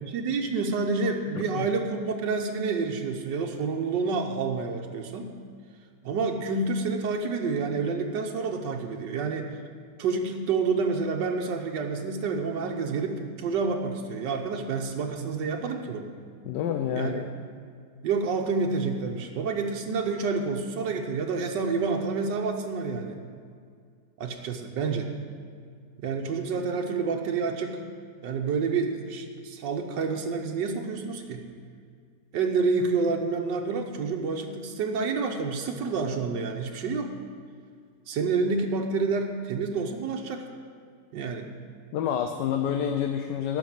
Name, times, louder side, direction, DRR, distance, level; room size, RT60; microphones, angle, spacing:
voice 1, 0.0-5.3 6.0-9.5 10.0-16.1 16.9-17.2 18.0-23.2 24.2-25.1 26.0-27.8 28.2-31.4 32.3-37.1 38.1-40.5 41.1-41.5, right 4 dB, 85° right, 2 dB, 1.5 m, -28 dB
voice 2, 16.4-17.3 41.9-43.6, left 9 dB, 80° left, 6 dB, 1.3 m, -28 dB
12.0 x 6.3 x 8.7 m, 2.1 s
omnidirectional pair, 1.9 m